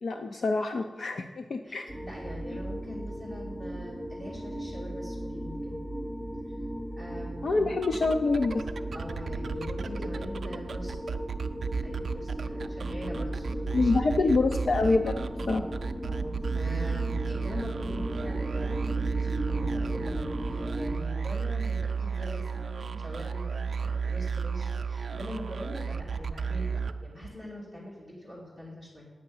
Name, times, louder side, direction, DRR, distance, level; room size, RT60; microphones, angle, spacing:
voice 1, 0.0-1.9 7.4-8.6 13.7-15.2 15.5-15.6, left 3 dB, 55° left, 6 dB, 0.5 m, -26 dB
voice 2, 1.6-5.8 6.5-6.6 6.9-7.7 8.9-10.9 11.8-13.9 14.2-14.3 16.1-29.0, equal, 30° left, -6 dB, 2.7 m, -43 dB
sound 1, 1.9-21.0, right 1 dB, ahead, 0.8 m, -36 dB
sound 2, 7.7-27.5, right 5 dB, 60° right, 0.4 m, -34 dB
9.2 x 6.5 x 8.6 m, 1.4 s
wide cardioid pair, 170°, 0 cm